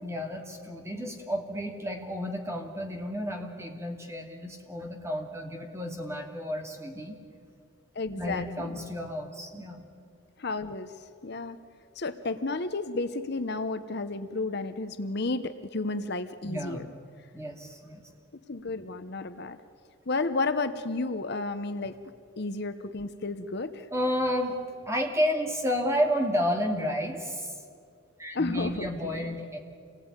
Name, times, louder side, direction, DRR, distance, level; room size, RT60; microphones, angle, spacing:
voice 1, 0.0-7.2 8.2-9.8 16.4-16.9 17.3-18.0 23.9-24.5 24.9-27.5 28.2-29.6, equal, 15° right, 2 dB, 2.6 m, -31 dB
voice 2, 7.9-8.8 10.4-10.9 11.2-11.6 12.0-16.9 18.5-19.6 20.1-22.0 22.4-23.9 28.3-29.4, left 3 dB, 50° left, 10 dB, 0.9 m, -32 dB
27.0 x 19.5 x 9.7 m, 2.4 s
head